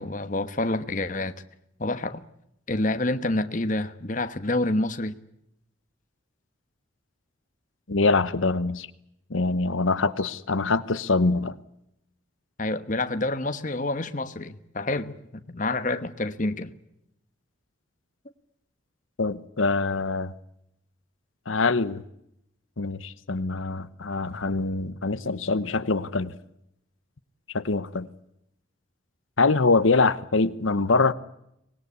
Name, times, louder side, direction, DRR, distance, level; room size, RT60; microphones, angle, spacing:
voice 1, 0.0-1.3 1.8-2.2 2.7-5.1 12.6-16.7, left 2 dB, 40° left, 10 dB, 1.2 m, -28 dB
voice 2, 7.9-8.9 9.3-11.6 19.2-20.3 21.5-22.0 22.8-26.3 27.5-28.1 29.4-31.1, left 3 dB, 85° left, 13 dB, 1.0 m, -24 dB
24.5 x 20.0 x 8.3 m, 0.80 s
head